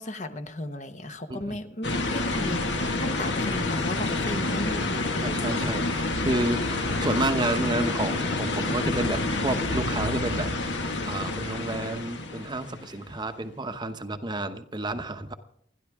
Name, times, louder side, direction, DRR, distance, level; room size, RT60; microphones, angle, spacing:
voice 1, 0.0-5.4, left 1 dB, 40° left, 8 dB, 1.0 m, -35 dB
sound 1, 1.8-13.0, left 2 dB, 70° left, 1.7 m, -28 dB
voice 2, 4.3-4.7 5.2-5.9 6.2-10.5 11.1-15.3, right 2 dB, 25° right, 8 dB, 0.8 m, -30 dB
29.5 x 11.0 x 3.6 m, 0.67 s
head